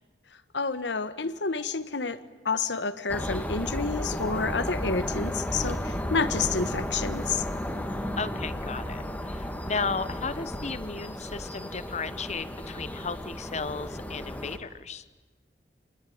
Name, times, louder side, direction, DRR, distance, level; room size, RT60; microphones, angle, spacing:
voice 1, 0.5-2.2 2.4-7.5, left 4 dB, 80° left, 13 dB, 1.4 m, -29 dB
sound 1, 3.1-14.6, left 1 dB, 10° left, 2.0 m, -33 dB
voice 2, 8.2-15.0, left 4 dB, 40° left, 15 dB, 1.1 m, -34 dB
28.5 x 21.0 x 9.5 m, 1.2 s
head